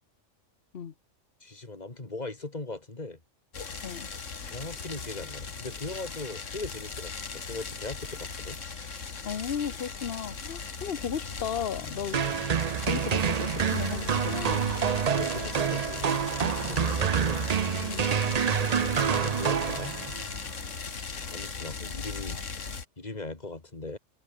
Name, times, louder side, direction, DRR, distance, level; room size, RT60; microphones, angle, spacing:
voice 1, 1.4-3.2 4.4-8.6 15.1-16.2 16.7-17.5 18.2-20.0 21.1-24.0, left 2 dB, 35° left, 2.7 m, -40 dB
sound 1, 3.5-22.8, left 5 dB, 80° left, 2.3 m, -38 dB
voice 2, 9.2-12.2 12.8-14.6 16.4-16.5 17.9-18.0, left 8 dB, 55° left, 1.1 m, -35 dB
sound 2, 10.3-21.9, equal, 15° right, 6.2 m, -52 dB
sound 3, 12.1-20.3, right 7 dB, 45° right, 0.6 m, -27 dB
omnidirectional pair, 1.3 m